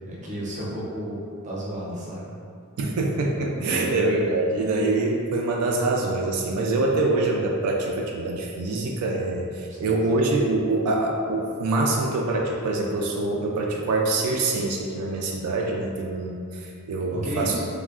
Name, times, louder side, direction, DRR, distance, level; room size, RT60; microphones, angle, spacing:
voice 1, 0.0-2.3 3.5-4.0 9.7-10.0 17.1-17.7, equal, 35° right, -6 dB, 0.6 m, -33 dB
voice 2, 2.8-17.5, right 2 dB, 85° right, 4 dB, 0.3 m, -25 dB
3.3 x 2.1 x 2.3 m, 2.4 s
head